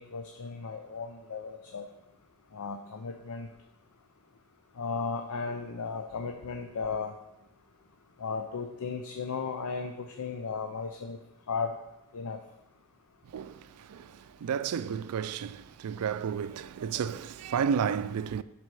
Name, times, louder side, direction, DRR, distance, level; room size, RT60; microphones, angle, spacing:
voice 1, 0.0-1.9 2.5-3.5 4.8-7.1 8.2-11.2 11.5-11.8 12.1-12.4, left 5 dB, 85° left, 0.6 m, -35 dB
voice 2, 13.3-18.4, right 7 dB, 90° right, 0.4 m, -32 dB
11.0 x 4.2 x 4.7 m
head